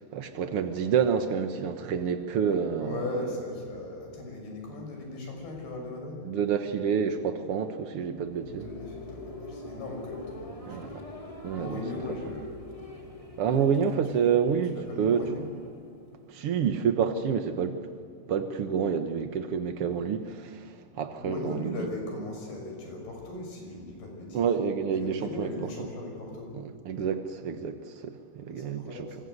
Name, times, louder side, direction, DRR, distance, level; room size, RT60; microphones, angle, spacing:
voice 1, 0.1-3.3 6.2-8.7 10.6-11.0 11.4-11.8 13.4-15.3 16.3-17.8 18.3-21.9 24.3-25.5 26.5-29.1, right 7 dB, 85° right, 7 dB, 1.2 m, -28 dB
voice 2, 2.8-6.3 8.4-10.9 11.5-12.6 14.7-15.5 21.2-24.6 25.0-26.5 28.6-29.2, left 2 dB, 70° left, 2 dB, 8.2 m, -38 dB
sound 1, 8.0-16.6, left 2 dB, 30° left, 0.6 m, -44 dB
26.5 x 26.0 x 8.1 m, 2.3 s
omnidirectional pair, 4.7 m